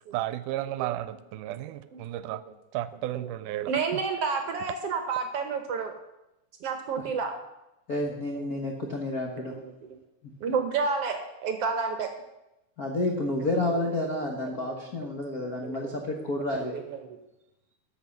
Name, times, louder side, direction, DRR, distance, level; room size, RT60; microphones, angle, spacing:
voice 1, 0.1-2.4 2.7-4.0, right 14 dB, 80° right, 15 dB, 2.0 m, -33 dB
voice 2, 1.9-2.4 3.1-5.9 6.6-7.3 8.3-10.0 10.4-12.1 13.7-14.7 15.4-16.0 16.7-17.2, right 5 dB, 65° right, 6 dB, 1.5 m, -32 dB
voice 3, 7.9-9.6 12.8-16.7, left 1 dB, 70° left, 1 dB, 0.8 m, -30 dB
12.5 x 5.8 x 7.1 m, 0.94 s
omnidirectional pair, 3.7 m